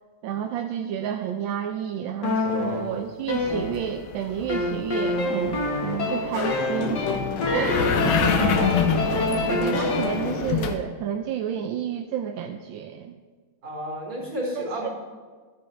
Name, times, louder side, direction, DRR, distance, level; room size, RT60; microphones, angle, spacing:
voice 1, 0.2-8.5 9.5-13.2 14.5-14.9, right 9 dB, 75° right, 5 dB, 1.3 m, -30 dB
sound 1, 2.2-4.1 4.5-10.3, left 2 dB, 60° left, 2.1 m, -27 dB
sound 2, 3.3-10.8, left 6 dB, 85° left, 1.6 m, -27 dB
voice 2, 8.2-8.9 13.6-14.9, right 1 dB, 60° right, -5 dB, 4.5 m, -31 dB
13.5 x 9.2 x 3.3 m, 1.5 s
omnidirectional pair, 2.2 m